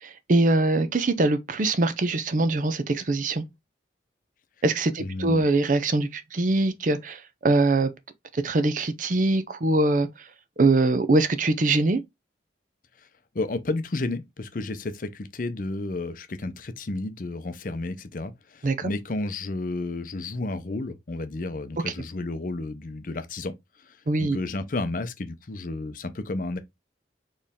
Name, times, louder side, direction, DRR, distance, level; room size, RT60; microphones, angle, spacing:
voice 1, 0.0-3.4 4.6-7.9 8.3-10.1 10.6-12.0 18.6-18.9 24.1-24.4, right 2 dB, 45° right, 0.5 m, -23 dB
voice 2, 5.0-5.4 13.3-26.6, left 2 dB, 45° left, 0.6 m, -32 dB
4.5 x 3.2 x 3.5 m
head